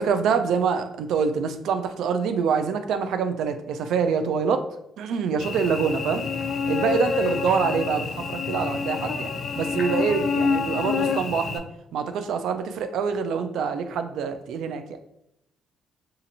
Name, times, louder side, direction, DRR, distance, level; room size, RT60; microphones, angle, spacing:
voice 1, 0.0-4.7 5.0-6.2 6.7-9.3 9.6-11.6 11.9-14.8, right 6 dB, 80° right, 9 dB, 0.3 m, -25 dB
Cricket / Buzz, 5.4-11.6, left 5 dB, 55° left, 0.4 m, -27 dB
2.8 x 2.5 x 4.0 m, 0.78 s
cardioid pair, 90°, 0 cm